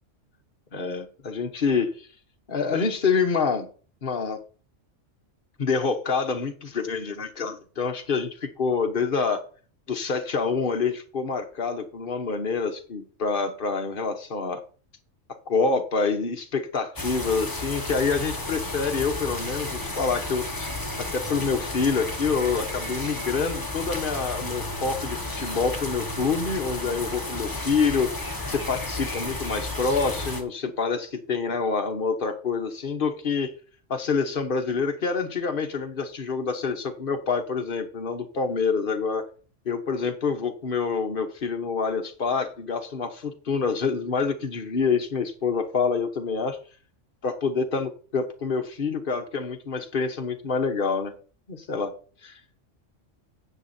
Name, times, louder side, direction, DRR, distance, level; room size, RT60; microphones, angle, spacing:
voice 1, 0.7-1.9 2.5-3.7 4.0-4.4 5.6-9.4 9.9-14.6 15.5-33.5 33.9-39.2 39.6-46.6 47.2-51.1 51.5-51.9, left 5 dB, 45° left, 5 dB, 1.3 m, -27 dB
sound 1, 17.0-30.4, left 2 dB, 15° left, 1.4 m, -32 dB
9.8 x 7.5 x 4.3 m, 0.40 s
omnidirectional pair, 1.3 m